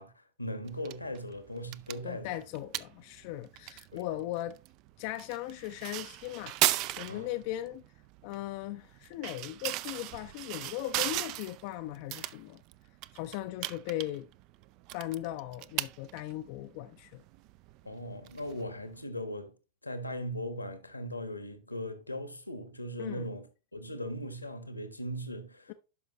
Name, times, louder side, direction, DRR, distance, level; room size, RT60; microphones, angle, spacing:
voice 1, 0.0-2.4 3.9-4.1 7.1-7.3 17.8-19.5 19.8-23.5 23.7-25.7, equal, 85° left, 1.1 m, -39 dB
sound 1, 0.7-19.0, right 16 dB, 40° right, 0.3 m, -38 dB
voice 2, 2.0-4.6 5.0-7.8 8.2-12.6 13.1-14.3 14.9-17.2 23.0-23.3 25.7-25.8, left 14 dB, 45° left, 0.4 m, -38 dB
11.5 x 5.4 x 2.9 m
figure-of-eight pair, 90°, 0 cm